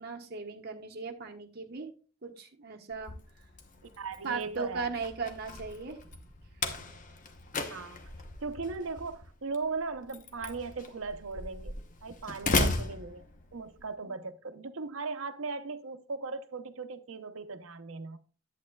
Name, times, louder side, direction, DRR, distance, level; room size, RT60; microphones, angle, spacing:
voice 1, 0.0-1.9 2.2-3.1 4.2-6.2, right 4 dB, 50° right, 1.2 m, -38 dB
Slam, 2.9-13.8, left 3 dB, 40° left, 0.9 m, -36 dB
voice 2, 4.0-4.9 7.7-8.1 8.4-13.3 13.5-18.2, right 4 dB, 90° right, 0.8 m, -38 dB
10.5 x 8.4 x 2.3 m
head